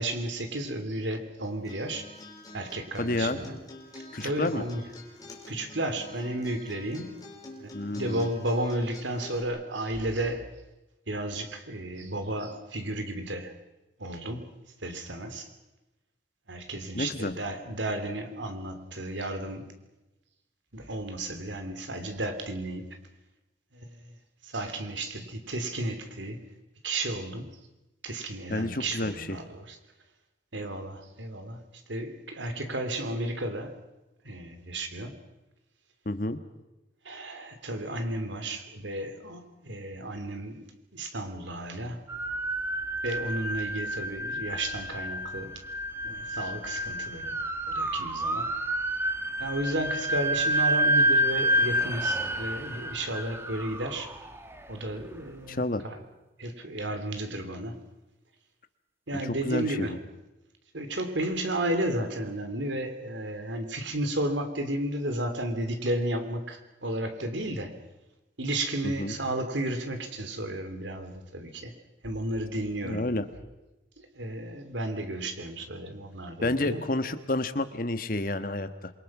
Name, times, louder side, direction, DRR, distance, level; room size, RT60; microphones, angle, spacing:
voice 1, 0.0-2.0 2.5-3.6 4.2-4.8 5.5-7.1 7.6-10.5 11.1-13.5 14.0-14.5 14.8-15.5 16.5-19.6 20.7-22.9 23.7-23.9 24.5-26.4 26.8-27.5 28.0-29.8 30.5-31.6 31.9-33.7 34.2-35.1 37.0-40.7 40.9-42.0 43.0-45.5 46.0-47.4 47.7-48.5 49.4-54.1 54.7-56.0 56.4-57.8 59.1-59.9 60.7-67.8 68.4-71.7 72.0-73.1 74.1-76.8, right 1 dB, 85° right, 7 dB, 3.2 m, -33 dB
Acoustic guitar, 1.4-9.4, left 2 dB, 20° left, 4.7 m, -47 dB
voice 2, 3.0-3.4 4.1-4.6 7.7-8.3 16.9-17.3 28.5-29.4 36.0-36.4 55.5-55.8 59.1-60.0 68.8-69.2 72.8-73.3 76.4-78.9, left 2 dB, 50° left, 10 dB, 1.5 m, -30 dB
sound 1, 42.1-55.1, right 1 dB, 15° right, 1.4 m, -29 dB
27.0 x 24.0 x 6.2 m, 1.0 s
head